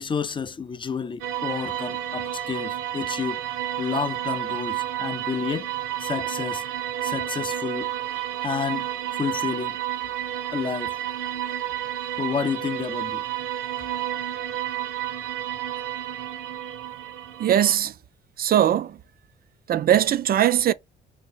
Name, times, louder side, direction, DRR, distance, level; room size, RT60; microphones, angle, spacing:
voice 1, 0.0-3.4 3.8-5.7 6.0-6.6 7.0-7.9 8.4-8.9 9.2-9.8 10.5-10.9 12.2-13.2, left 6 dB, 25° left, 0.4 m, -30 dB
sound 1, 1.2-17.8, right 12 dB, 80° right, 0.8 m, -31 dB
voice 2, 17.4-18.0 18.4-19.0 19.7-20.7, right 11 dB, 50° right, 0.4 m, -20 dB
3.0 x 2.9 x 4.4 m
cardioid pair, 90°, 20 cm